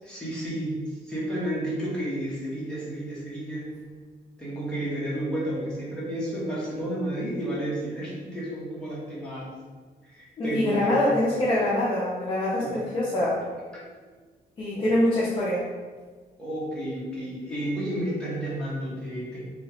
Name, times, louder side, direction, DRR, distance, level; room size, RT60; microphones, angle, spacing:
voice 1, 0.0-0.8 1.0-3.7 4.4-9.5 10.0-11.2 12.6-12.9 13.7-14.0 14.7-14.9 16.4-19.4, right 1 dB, 5° left, -9 dB, 0.8 m, -31 dB
voice 2, 10.4-13.4 14.6-15.6, left 1 dB, 30° left, -7 dB, 0.5 m, -24 dB
2.9 x 2.3 x 2.9 m, 1.4 s
cardioid pair, 170°, 17 cm